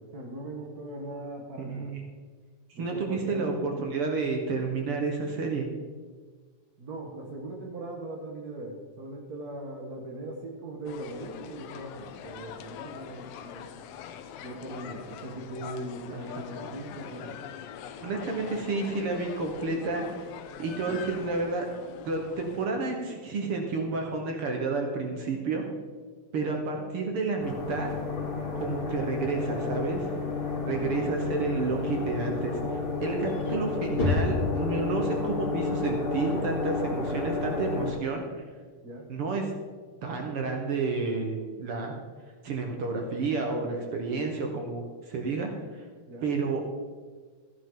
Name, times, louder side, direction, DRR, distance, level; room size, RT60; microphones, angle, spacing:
voice 1, 0.0-1.9 2.8-3.9 6.8-13.7 14.4-17.4 20.9-21.0 26.4-26.6 30.7-31.3 38.8-39.0 46.1-46.3, right 1 dB, 90° right, 0 dB, 0.8 m, -40 dB
voice 2, 1.6-2.0 2.7-5.7 16.4-16.5 18.0-20.1 20.6-21.7 22.0-25.6 26.3-28.0 28.5-30.0 30.7-38.2 39.1-39.5 40.0-42.0 42.4-45.9 46.2-46.7, right 3 dB, 60° right, 2 dB, 1.6 m, -30 dB
sound 1, 10.9-22.7, left 8 dB, 85° left, 2.4 m, -43 dB
sound 2, 27.4-37.9, left 4 dB, 20° left, 1.9 m, -30 dB
14.0 x 11.0 x 3.8 m, 1.5 s
omnidirectional pair, 3.9 m